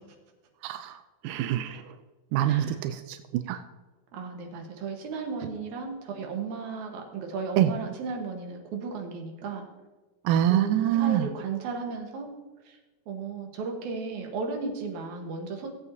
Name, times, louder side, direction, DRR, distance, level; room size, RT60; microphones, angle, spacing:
voice 1, 0.6-1.0 1.2-1.8 2.3-3.6 7.6-7.7 10.3-11.3, right 11 dB, 85° right, 9 dB, 1.9 m, -25 dB
voice 2, 2.4-2.8 4.1-9.6 10.5-12.3 12.7-12.8 13.1-15.7, right 4 dB, 60° right, 2 dB, 2.4 m, -35 dB
17.0 x 8.2 x 2.8 m, 1.2 s
omnidirectional pair, 4.3 m